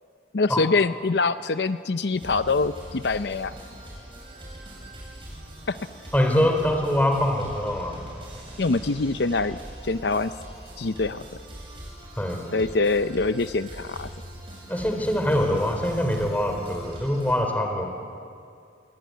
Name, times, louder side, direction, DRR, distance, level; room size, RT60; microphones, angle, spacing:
voice 1, 0.3-3.6 5.7-5.8 8.6-10.3 10.8-11.3 12.5-14.1, left 3 dB, 70° left, 12 dB, 0.6 m, -24 dB
sound 1, 2.1-17.3, right 1 dB, 30° right, 7.4 m, -42 dB
voice 2, 6.1-8.0 12.2-12.4 14.7-17.9, left 1 dB, 10° left, 4 dB, 3.7 m, -24 dB
27.5 x 22.5 x 9.5 m, 2.4 s
head